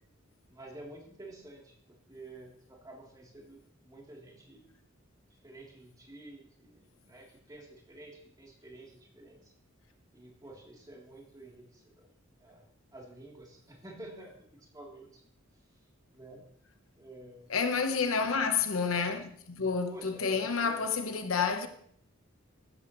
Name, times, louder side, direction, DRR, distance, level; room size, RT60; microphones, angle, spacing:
voice 1, 0.5-3.6 3.8-4.7 5.4-9.5 10.1-12.1 12.4-15.2 16.1-16.5 17.0-17.5 19.9-20.8, right 1 dB, 20° right, 3.3 m, -50 dB
voice 2, 17.5-21.7, left 5 dB, 75° left, 1.1 m, -29 dB
14.5 x 12.5 x 3.2 m
head